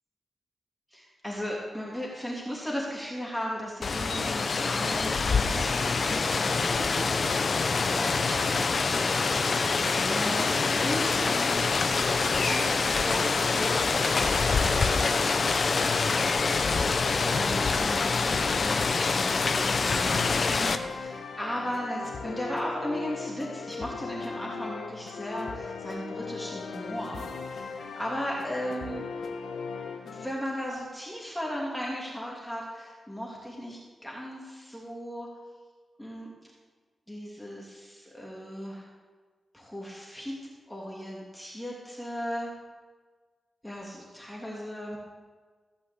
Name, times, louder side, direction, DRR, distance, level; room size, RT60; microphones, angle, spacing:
voice 1, 0.9-16.1 17.1-29.0 30.0-35.3 36.0-36.3 37.1-38.9 39.5-40.3 40.7-42.5 43.6-45.0, equal, 5° left, -4 dB, 2.7 m, -37 dB
Rain, 3.8-20.8, left 4 dB, 55° left, 0.8 m, -25 dB
sound 1, 13.2-30.3, left 5 dB, 85° left, 1.1 m, -39 dB
16.0 x 5.7 x 8.3 m, 1.4 s
wide cardioid pair, 95°, 0 cm